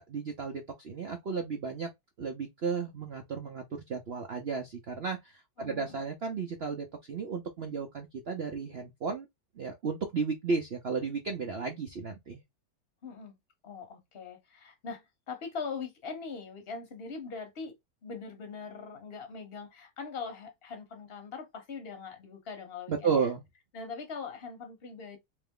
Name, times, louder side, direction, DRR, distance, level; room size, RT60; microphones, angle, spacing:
voice 1, 0.0-1.9 2.2-9.3 9.6-12.4 22.9-23.4, right 5 dB, 60° right, 0.6 m, -33 dB
voice 2, 5.6-6.0 13.0-13.4 13.6-17.7 18.0-23.3 23.7-25.2, left 5 dB, 40° left, 1.2 m, -41 dB
3.4 x 3.0 x 3.6 m
omnidirectional pair, 1.9 m